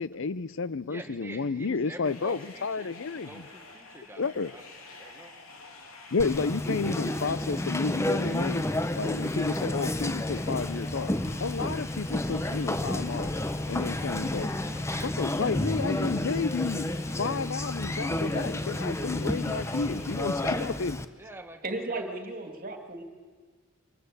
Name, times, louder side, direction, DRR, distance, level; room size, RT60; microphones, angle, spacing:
voice 1, 0.0-3.3 4.2-4.5 6.1-8.7 9.0-11.1 11.4-13.3 13.7-14.5 15.2-21.0, left 4 dB, 65° left, 17 dB, 0.6 m, -31 dB
voice 2, 0.9-4.6 4.9-5.3 12.4-13.6 14.3-15.6 20.2-20.7 21.0-22.1, right 1 dB, 10° right, 4 dB, 1.6 m, -46 dB
sound 1, 2.0-20.7, left 3 dB, 90° left, 3.3 m, -49 dB
Conversation, 6.2-21.0, left 1 dB, 15° left, 0.8 m, -31 dB
voice 3, 21.6-23.0, right 2 dB, 45° right, 5 dB, 2.5 m, -35 dB
24.5 x 19.0 x 8.3 m, 1.4 s
head